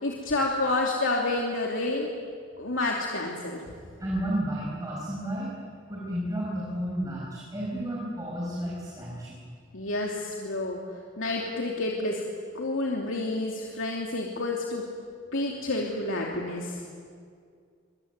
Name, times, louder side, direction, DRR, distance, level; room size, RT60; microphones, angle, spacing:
voice 1, 0.0-2.1 2.6-3.6 9.7-10.8 11.2-12.2 12.5-14.8 15.3-16.8, left 2 dB, 85° left, -1 dB, 2.9 m, -29 dB
voice 2, 4.0-5.5 5.9-9.4, equal, 20° right, -5 dB, 5.9 m, -32 dB
24.5 x 23.0 x 9.5 m, 2.1 s
head